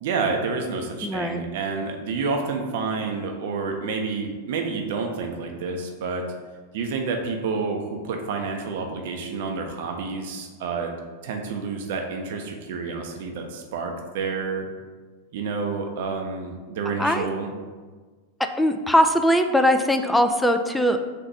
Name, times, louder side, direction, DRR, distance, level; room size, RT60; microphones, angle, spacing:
voice 1, 0.0-6.3 6.7-10.9 11.2-14.7 15.3-17.5, right 4 dB, 55° right, 3 dB, 0.5 m, -29 dB
voice 2, 1.0-1.4 17.0-17.3 18.4-21.0, equal, 5° left, 6 dB, 0.3 m, -20 dB
3.9 x 2.5 x 4.4 m, 1.4 s
figure-of-eight pair, 90°, 0 cm